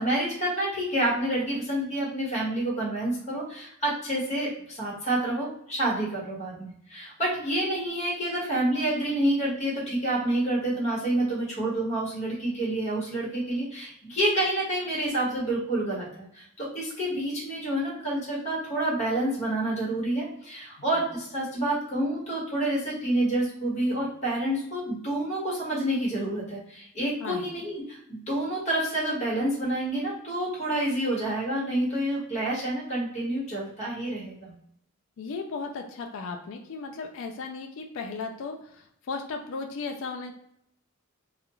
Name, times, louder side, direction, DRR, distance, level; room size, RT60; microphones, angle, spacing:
voice 1, 0.0-34.5, right 1 dB, 35° left, -5 dB, 1.2 m, -28 dB
voice 2, 35.2-40.3, left 4 dB, 65° left, 3 dB, 0.4 m, -36 dB
2.4 x 2.3 x 2.9 m, 0.72 s
head